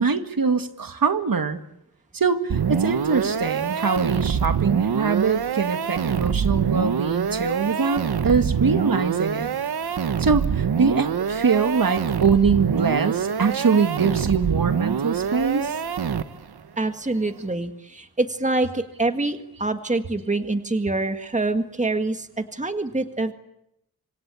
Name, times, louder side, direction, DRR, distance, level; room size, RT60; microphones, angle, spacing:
voice 1, 0.0-1.6 2.1-9.5 10.2-15.7, right 5 dB, 65° right, 8 dB, 2.0 m, -23 dB
sound 1, 2.5-16.6, right 7 dB, 85° right, 1.2 m, -25 dB
voice 2, 16.8-23.3, right 2 dB, 20° right, 7 dB, 1.8 m, -25 dB
26.5 x 26.0 x 8.5 m, 0.81 s
wide cardioid pair, 105°, 38 cm